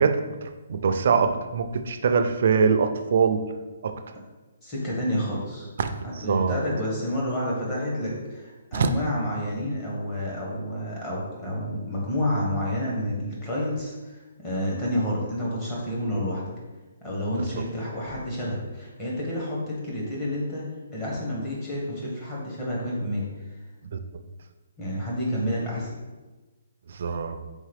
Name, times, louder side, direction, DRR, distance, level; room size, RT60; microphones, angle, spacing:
voice 1, 0.0-3.5 3.8-3.9 5.8-6.6 8.7-8.9 17.6-17.7 23.9-24.0 26.9-27.4, right 5 dB, 45° right, 8 dB, 0.3 m, -23 dB
voice 2, 4.6-5.7 6.0-16.4 17.0-20.7 20.9-23.2 24.8-25.9, equal, 15° left, -5 dB, 0.9 m, -29 dB
3.7 x 3.6 x 3.3 m, 1.2 s
hypercardioid pair, 175°, 0 cm